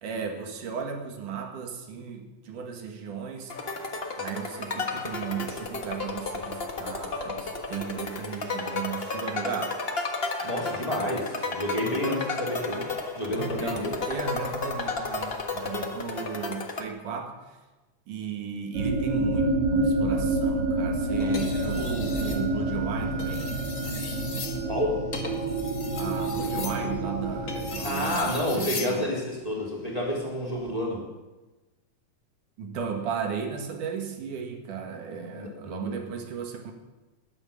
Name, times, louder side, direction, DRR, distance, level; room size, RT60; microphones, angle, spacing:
voice 1, 0.0-3.5 4.2-9.8 13.3-17.6 18.1-23.6 25.9-29.1 32.6-36.7, right 7 dB, 80° right, 3 dB, 3.3 m, -35 dB
sound 1, 3.5-16.8, left 3 dB, 55° left, 0.6 m, -33 dB
voice 2, 10.4-12.8 13.1-13.9 21.6-21.9 24.6-25.0 27.8-31.0 35.3-36.1, left 1 dB, 10° left, -3 dB, 3.6 m, -30 dB
sound 2, 18.7-28.6, right 2 dB, 60° right, 4.7 m, -28 dB
sound 3, 21.2-22.4 23.1-29.0 30.4-30.7, left 3 dB, 30° left, 2.4 m, -38 dB
20.0 x 9.6 x 7.1 m, 1.1 s
omnidirectional pair, 3.6 m